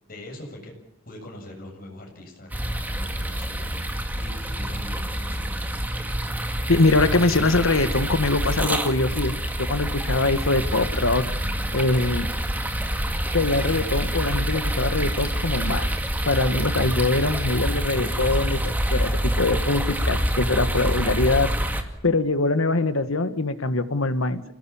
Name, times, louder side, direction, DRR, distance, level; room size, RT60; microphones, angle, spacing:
voice 1, 0.1-0.7 1.1-5.6, left 1 dB, 45° left, 1 dB, 7.5 m, -42 dB
sound 1, 2.5-21.8, right 1 dB, 10° right, 2.0 m, -26 dB
voice 2, 6.7-11.3 11.7-12.3 13.3-15.9 16.3-21.5 22.0-24.4, left 2 dB, 90° left, 11 dB, 1.6 m, -23 dB
28.0 x 18.5 x 7.2 m, 0.79 s
head